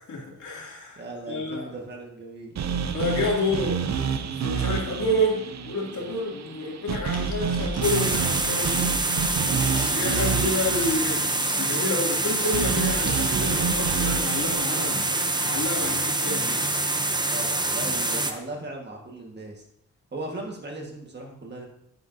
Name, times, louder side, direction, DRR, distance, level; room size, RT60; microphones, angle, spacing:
voice 1, 0.0-1.7 2.9-3.8 4.1-9.1 9.9-11.2 11.5-16.7, left 1 dB, 75° left, -3 dB, 2.7 m, -29 dB
voice 2, 1.0-2.6 9.3-9.6 9.9-10.0 17.3-19.6 20.1-21.7, right 2 dB, 35° right, 0 dB, 1.6 m, -37 dB
sound 1, 2.6-16.7, right 6 dB, 65° right, 0.6 m, -30 dB
Crackle, 7.1-13.3, left 3 dB, 55° left, 1.8 m, -44 dB
sound 2, 7.8-18.3, right 2 dB, 15° right, 0.6 m, -26 dB
9.8 x 9.6 x 2.7 m, 0.74 s
wide cardioid pair, 165°, 30 cm